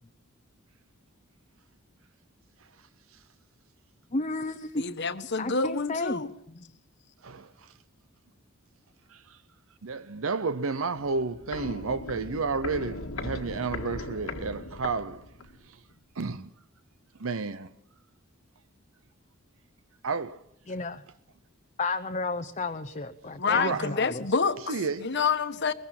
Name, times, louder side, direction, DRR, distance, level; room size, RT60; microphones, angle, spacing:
voice 1, 4.1-4.8 5.4-6.2 20.7-21.0 21.8-24.2, left 3 dB, 35° left, 0.8 m, -32 dB
voice 2, 4.7-6.3 23.4-25.7, left 5 dB, 55° left, 1.4 m, -28 dB
voice 3, 7.2-7.7 9.1-9.4 9.8-15.3 15.6-15.8 16.2-16.5 17.2-17.7 20.0-20.4 23.5-23.9 24.7-25.1, right 4 dB, 70° right, 0.8 m, -31 dB
Walk footsteps, 10.9-15.6 15.9-16.0, left 2 dB, 80° left, 1.9 m, -38 dB
22.5 x 21.0 x 5.9 m
head